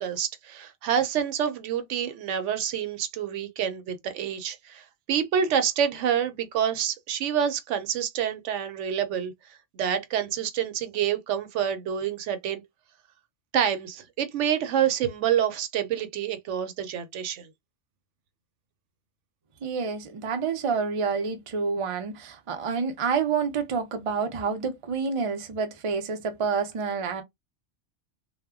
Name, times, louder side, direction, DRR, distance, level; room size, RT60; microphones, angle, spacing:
voice 1, 0.0-12.6 13.5-17.5, right 9 dB, 75° right, 0.9 m, -27 dB
voice 2, 19.6-27.2, right 5 dB, 50° right, 0.4 m, -28 dB
2.1 x 2.1 x 3.4 m
omnidirectional pair, 1.3 m